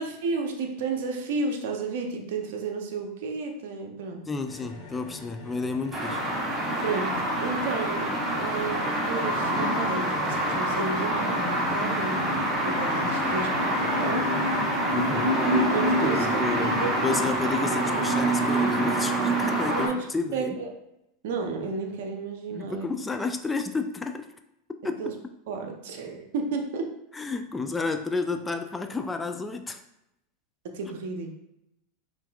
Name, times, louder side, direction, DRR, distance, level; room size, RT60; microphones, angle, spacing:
voice 1, 0.0-4.3 6.8-12.3 12.6-14.3 15.5-16.9 19.7-20.1 20.3-20.7 21.2-22.9 25.0-25.1 25.5-26.9 30.6-31.3, right 4 dB, 70° right, 3 dB, 0.7 m, -32 dB
voice 2, 4.3-6.2 14.9-15.4 16.0-20.6 22.5-24.3 24.8-25.1 27.1-29.8, left 4 dB, 15° left, 6 dB, 0.3 m, -31 dB
sound 1, 4.4-18.4, left 3 dB, 55° left, 0.8 m, -43 dB
sound 2, 5.9-19.9, right 1 dB, 20° right, 1.1 m, -26 dB
5.6 x 2.6 x 2.3 m, 0.84 s
hypercardioid pair, 95°, 0 cm